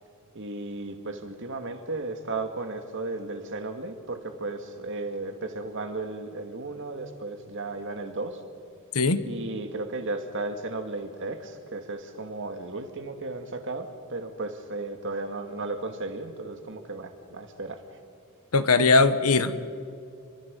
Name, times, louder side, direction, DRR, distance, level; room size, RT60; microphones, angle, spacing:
voice 1, 0.3-8.4 9.3-17.8, right 2 dB, 55° right, 6 dB, 2.2 m, -35 dB
voice 2, 18.5-19.7, left 3 dB, 75° left, 12 dB, 1.3 m, -20 dB
29.5 x 24.0 x 5.5 m, 2.6 s
head